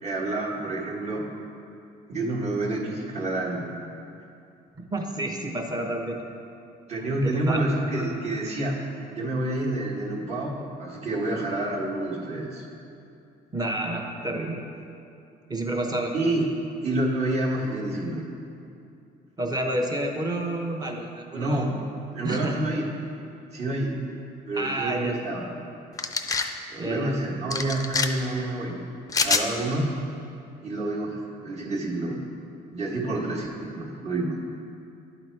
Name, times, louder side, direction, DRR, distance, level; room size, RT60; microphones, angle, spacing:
voice 1, 0.0-1.3 2.1-3.7 6.9-8.8 9.1-12.7 16.1-16.4 16.8-18.2 21.3-21.8 22.1-22.9 23.5-24.0 24.5-25.5 26.7-28.8 29.2-29.9 30.6-32.2 32.7-34.4, right 2 dB, 40° right, -2 dB, 1.4 m, -28 dB
voice 2, 4.9-6.2 7.2-8.1 13.5-14.6 15.5-16.1 19.4-21.7 22.2-22.6 24.5-25.1 26.8-27.1, right 1 dB, 25° right, 1 dB, 0.9 m, -29 dB
sound 1, 26.0-26.5 27.5-28.1 29.1-29.5, left 4 dB, 20° left, 0.4 m, -25 dB
11.0 x 4.0 x 4.5 m, 2.6 s
cardioid pair, 110°, 17 cm